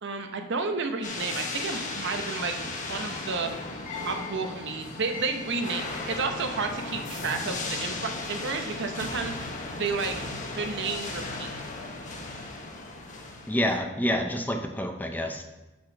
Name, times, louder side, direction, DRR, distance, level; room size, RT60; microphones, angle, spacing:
voice 1, 0.0-3.5 4.0-9.5 9.7-10.2 10.6-11.5, right 4 dB, 60° right, 5 dB, 0.9 m, -31 dB
sound 1, 1.0-13.7, left 2 dB, 40° left, 1.1 m, -36 dB
voice 2, 13.5-15.4, equal, 10° left, 4 dB, 0.6 m, -28 dB
6.2 x 6.2 x 5.9 m, 1.0 s
head